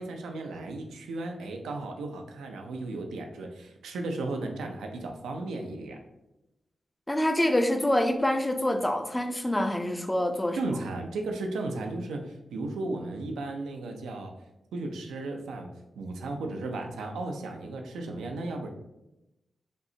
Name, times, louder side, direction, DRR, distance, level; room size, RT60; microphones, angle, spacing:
voice 1, 0.0-6.0 10.5-14.3 14.7-15.7 16.0-18.7, right 2 dB, 90° right, 4 dB, 0.4 m, -35 dB
voice 2, 7.1-10.6, left 1 dB, 15° left, 6 dB, 0.5 m, -26 dB
5.1 x 2.1 x 2.7 m, 0.94 s
supercardioid pair, 45°, 0 cm